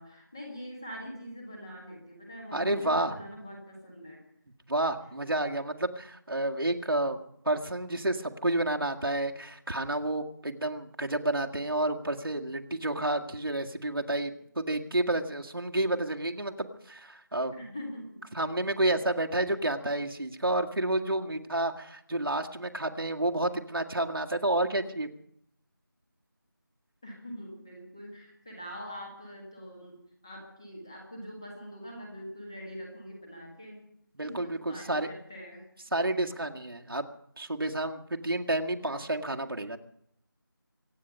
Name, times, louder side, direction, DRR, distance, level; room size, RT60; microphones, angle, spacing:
voice 1, 0.0-4.2 17.5-18.2 27.0-33.8 34.2-35.6, equal, 10° left, -2 dB, 1.8 m, -43 dB
voice 2, 2.5-3.2 4.7-7.2 7.4-17.5 18.3-25.1 34.2-35.1 35.9-37.1 37.4-39.8, right 1 dB, 75° right, 2 dB, 1.9 m, -30 dB
25.0 x 9.7 x 5.5 m, 0.72 s
figure-of-eight pair, 180°, 12 cm